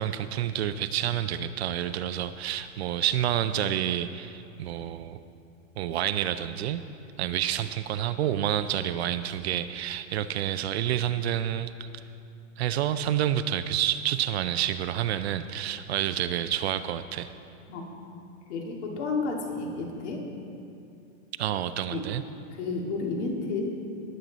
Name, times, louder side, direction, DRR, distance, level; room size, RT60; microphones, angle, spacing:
voice 1, 0.0-5.2 5.8-6.8 7.2-12.0 12.6-17.3 21.4-22.2, right 11 dB, 55° right, 11 dB, 0.5 m, -29 dB
voice 2, 18.5-20.2 21.9-22.0 22.6-23.7, left 3 dB, 60° left, 0 dB, 2.2 m, -31 dB
19.0 x 7.8 x 4.0 m, 2.7 s
hypercardioid pair, 150°, 40 cm